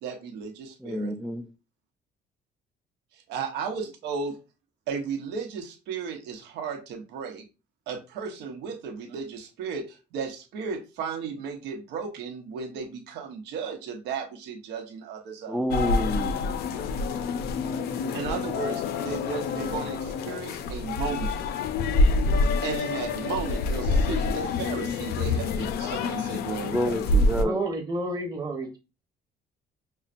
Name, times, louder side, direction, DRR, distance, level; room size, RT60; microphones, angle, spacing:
voice 1, 0.0-1.1 3.1-4.3 4.9-7.4 7.9-15.6 18.1-21.3 22.3-27.0, right 6 dB, 85° right, 0.9 m, -35 dB
voice 2, 0.8-1.5 15.5-16.4 26.7-27.6, equal, ahead, 0.3 m, -29 dB
sound 1, 15.7-27.5, left 3 dB, 70° left, 0.5 m, -27 dB
voice 3, 27.4-28.8, right 1 dB, 20° right, 1.1 m, -30 dB
5.5 x 2.1 x 2.5 m
cardioid pair, 110°, 17 cm